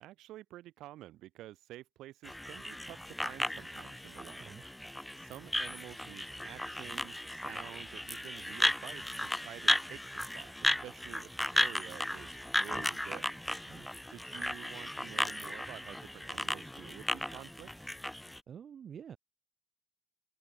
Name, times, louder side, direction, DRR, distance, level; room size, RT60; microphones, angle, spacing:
voice 1, 0.0-4.9 5.2-13.7 14.1-17.7, right 15 dB, 90° right, 6.1 m, -50 dB
sound 1, 2.2-18.4, left 1 dB, 5° left, 0.5 m, -35 dB
voice 2, 18.5-19.2, right 8 dB, 55° right, 1.8 m, -48 dB
open air
cardioid pair, 90°, 0 cm